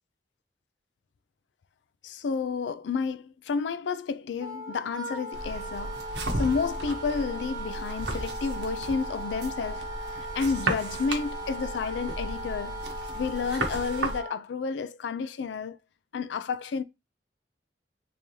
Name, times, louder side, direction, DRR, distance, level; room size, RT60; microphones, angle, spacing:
voice 1, 2.0-6.1 6.4-9.9 10.2-12.9 13.1-15.8 16.1-16.8, left 5 dB, 80° left, 0.4 m, -31 dB
Wind instrument woodwind instrument, 4.4-14.4, right 1 dB, 20° right, 0.9 m, -38 dB
sound 1, 5.3-14.2, right 2 dB, 70° right, 0.9 m, -35 dB
3.7 x 2.7 x 3.1 m
head